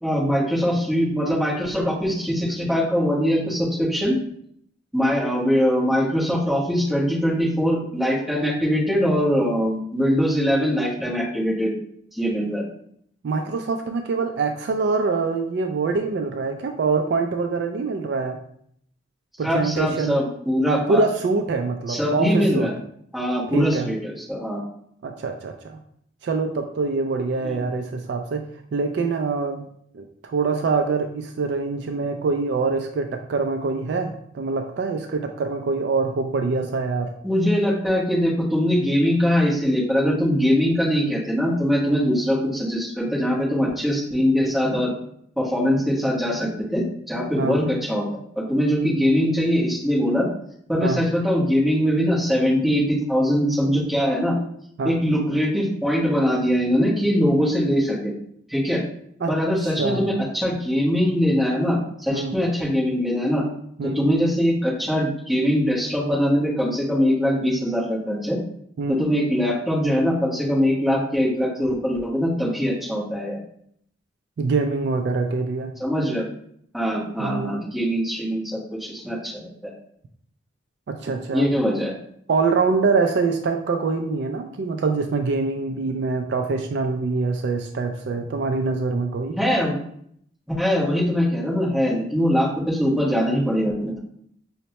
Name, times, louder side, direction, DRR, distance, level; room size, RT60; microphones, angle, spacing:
voice 1, 0.0-4.2 4.9-11.7 12.1-12.7 19.4-21.0 21.9-22.7 23.1-24.6 27.4-27.6 37.2-44.9 45.4-48.1 48.4-50.3 50.7-54.4 54.8-58.1 58.5-58.8 59.3-63.4 63.8-68.4 68.9-73.4 75.8-76.3 76.7-79.7 81.3-82.0 89.3-89.7 90.5-94.0, equal, ahead, -7 dB, 1.1 m, -22 dB
voice 2, 13.2-18.4 19.4-20.2 20.7-22.7 23.5-23.9 25.0-25.8 26.2-28.4 28.7-29.6 29.9-37.1 47.4-47.6 50.8-51.0 54.8-55.0 59.2-59.3 59.6-60.1 62.1-62.4 63.8-64.0 68.8-69.0 74.4-75.7 77.2-77.6 80.9-81.5 82.3-89.4, right 4 dB, 60° right, 5 dB, 0.3 m, -24 dB
5.2 x 2.1 x 2.8 m, 0.67 s
head